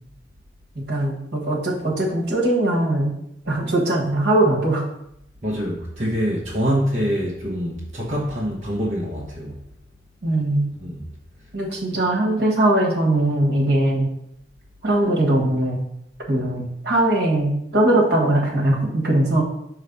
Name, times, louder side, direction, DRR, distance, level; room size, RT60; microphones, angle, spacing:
voice 1, 0.7-3.1 3.4-4.8 10.2-10.7 11.5-14.1 14.8-15.8 16.3-19.4, right 1 dB, 60° right, -2 dB, 1.5 m, -20 dB
voice 2, 5.4-9.7 10.8-11.1, equal, 35° right, -5 dB, 0.9 m, -25 dB
5.5 x 3.3 x 5.2 m, 0.78 s
head